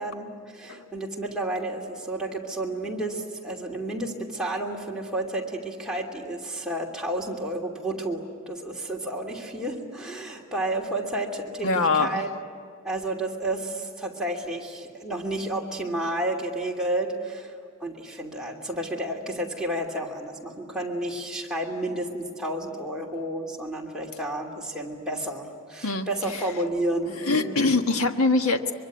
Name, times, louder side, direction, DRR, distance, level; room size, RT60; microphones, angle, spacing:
voice 1, 0.0-12.3 12.8-27.7, right 1 dB, 5° right, -2 dB, 2.9 m, -31 dB
voice 2, 11.6-12.2 25.8-26.1 27.2-28.7, left 3 dB, 80° left, 6 dB, 1.5 m, -23 dB
24.0 x 23.5 x 9.5 m, 2.2 s
head